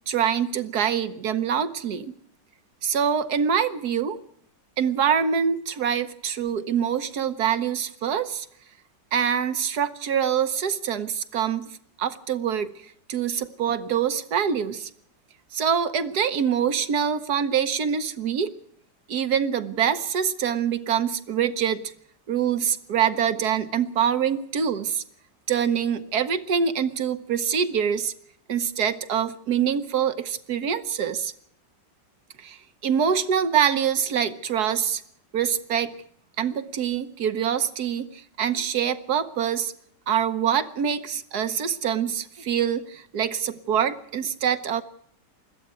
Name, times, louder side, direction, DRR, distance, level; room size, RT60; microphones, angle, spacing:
voice 1, 0.1-2.1 2.8-4.2 4.8-8.5 9.1-11.7 12.0-12.7 13.1-14.9 15.5-18.5 19.1-21.8 22.3-25.0 25.5-28.1 28.5-31.3 32.4-35.0 35.3-35.9 36.4-39.7 40.1-44.8, right 8 dB, 65° right, 11 dB, 1.5 m, -25 dB
21.0 x 14.0 x 9.4 m, 0.68 s
omnidirectional pair, 1.9 m